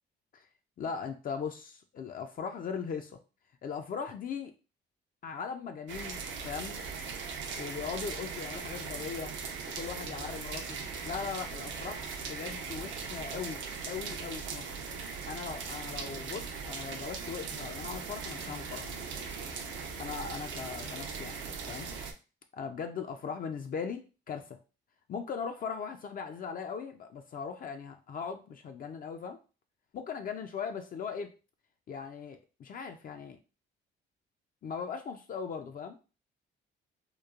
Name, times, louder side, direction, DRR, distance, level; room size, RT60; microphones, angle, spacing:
voice 1, 0.8-3.2 3.6-4.5 5.2-6.8 7.6-9.3 9.7-10.8 11.0-14.7 15.3-19.1 20.0-21.4 21.7-21.9 22.5-24.6 25.1-29.4 29.9-31.4 31.9-33.4 34.6-36.0, left 6 dB, 45° left, 6 dB, 0.4 m, -39 dB
sound 1, 5.9-22.1, right 5 dB, 75° right, 0.5 m, -39 dB
3.0 x 2.1 x 2.3 m, 0.33 s
cardioid pair, 90°, 20 cm